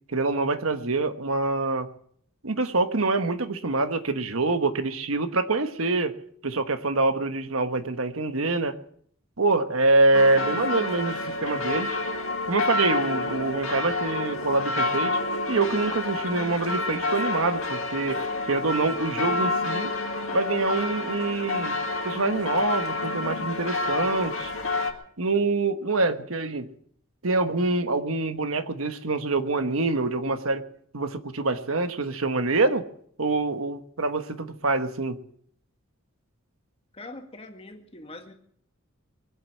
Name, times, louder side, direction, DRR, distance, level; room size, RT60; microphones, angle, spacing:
voice 1, 0.1-1.9 2.4-6.2 6.4-8.7 9.4-12.0 12.5-15.2 15.5-20.0 20.3-21.8 22.0-24.5 25.2-26.7 27.2-30.7 30.9-32.8 33.2-35.2, right 3 dB, 75° right, 9 dB, 1.2 m, -25 dB
sound 1, 10.1-24.9, left 2 dB, 70° left, 2.0 m, -29 dB
voice 2, 36.9-38.3, left 2 dB, 30° left, 5 dB, 1.8 m, -42 dB
23.5 x 8.0 x 7.2 m, 0.63 s
head